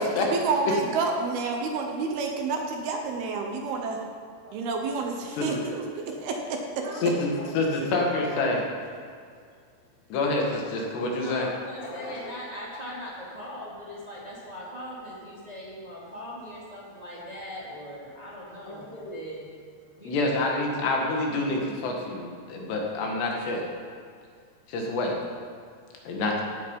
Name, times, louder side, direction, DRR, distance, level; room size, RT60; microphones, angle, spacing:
voice 1, 0.0-4.0 4.5-7.1, right 4 dB, 70° right, 2 dB, 2.8 m, -29 dB
voice 2, 6.9-8.6 10.1-11.5 11.8-12.3 18.7-19.1 20.1-23.6 24.7-25.2 26.1-26.4, left 2 dB, 75° left, 0 dB, 3.9 m, -27 dB
voice 3, 8.2-8.6 9.0-9.1 11.1-19.5 20.0-20.4, equal, 10° right, -7 dB, 2.1 m, -40 dB
16.0 x 9.3 x 5.5 m, 2.2 s
omnidirectional pair, 4.9 m